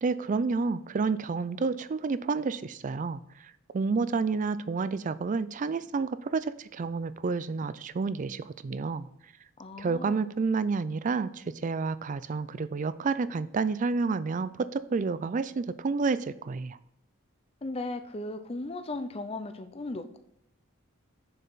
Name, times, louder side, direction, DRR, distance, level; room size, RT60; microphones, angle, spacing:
voice 1, 0.0-3.2 3.7-9.1 9.8-16.8, right 4 dB, 35° right, 15 dB, 0.4 m, -30 dB
voice 2, 9.6-10.3 17.6-20.2, left 2 dB, 25° left, 9 dB, 0.5 m, -36 dB
6.7 x 6.6 x 4.0 m, 0.82 s
head